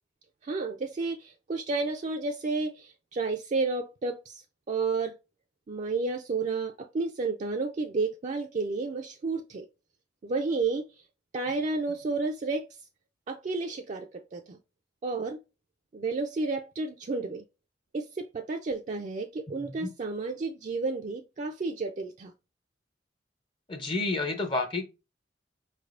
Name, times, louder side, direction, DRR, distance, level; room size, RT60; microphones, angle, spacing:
voice 1, 0.4-5.2 5.7-9.7 10.2-10.9 11.3-12.7 13.3-14.6 15.0-15.4 15.9-17.4 17.9-22.3, right 3 dB, 40° right, 0.3 m, -31 dB
voice 2, 23.7-24.8, left 3 dB, 30° left, 0.5 m, -29 dB
4.8 x 3.3 x 2.4 m
head